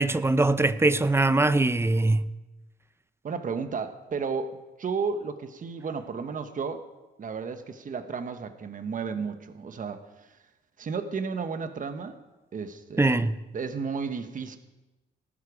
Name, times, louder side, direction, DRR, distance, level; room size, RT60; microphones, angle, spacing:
voice 1, 0.0-2.3 13.0-13.4, right 2 dB, 10° right, 0.7 m, -22 dB
voice 2, 3.2-6.8 7.2-10.4 10.8-12.2 12.5-13.2 13.5-14.6, right 5 dB, 40° right, 1.2 m, -33 dB
18.5 x 12.0 x 5.0 m
cardioid pair, 90°, 20 cm